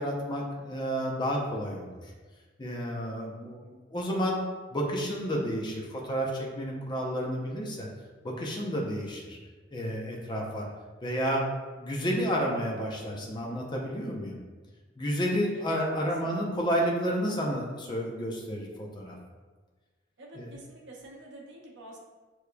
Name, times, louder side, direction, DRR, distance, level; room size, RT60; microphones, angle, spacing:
voice 1, 0.0-1.9 2.6-4.4 4.7-7.9 8.2-9.4 9.7-10.7 11.0-11.4 11.8-14.4 15.0-19.2 20.3-20.5, equal, 25° left, -2 dB, 0.7 m, -31 dB
voice 2, 15.5-16.5 20.2-22.0, right 1 dB, 65° right, -3 dB, 0.9 m, -48 dB
6.7 x 3.1 x 2.3 m, 1.3 s
head